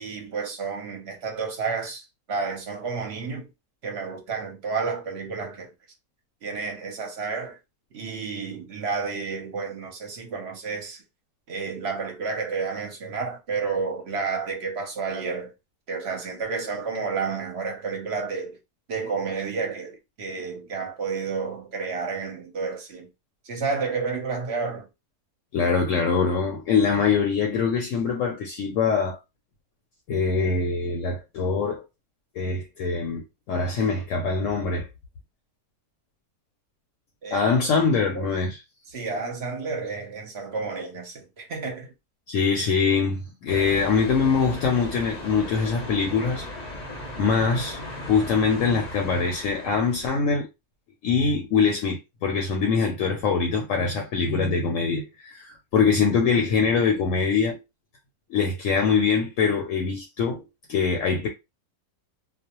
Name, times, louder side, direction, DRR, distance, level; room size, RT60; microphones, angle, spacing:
voice 1, 0.0-3.5 3.8-5.7 6.4-7.6 7.9-11.0 11.5-15.5 15.9-18.6 18.9-23.1 23.4-24.9 37.2-37.5 38.1-38.3 38.9-41.9, right 4 dB, 55° right, 0.9 m, -31 dB
voice 2, 25.5-29.2 30.1-31.8 32.3-34.9 37.3-38.6 42.3-46.4 47.2-50.5 51.0-57.6 58.3-60.4 60.7-61.3, left 5 dB, 70° left, 0.8 m, -23 dB
sound 1, 43.5-50.0, left 1 dB, 45° left, 0.5 m, -37 dB
2.4 x 2.0 x 2.9 m
omnidirectional pair, 1.6 m